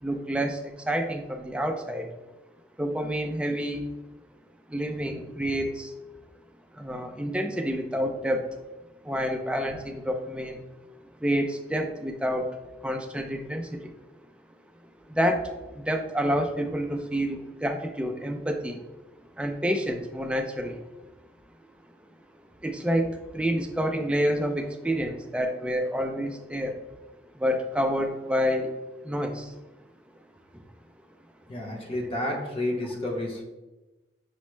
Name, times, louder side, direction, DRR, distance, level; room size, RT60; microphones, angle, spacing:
voice 1, 0.0-2.1 2.8-3.8 4.7-5.9 6.7-8.5 9.0-10.6 11.2-13.9 15.1-18.8 19.4-20.8 22.6-26.8 27.3-28.7 29.0-29.5, equal, 5° right, 4 dB, 0.3 m, -28 dB
voice 2, 31.5-33.4, left 1 dB, 30° left, 0 dB, 0.7 m, -30 dB
6.1 x 2.0 x 3.1 m, 1.1 s
head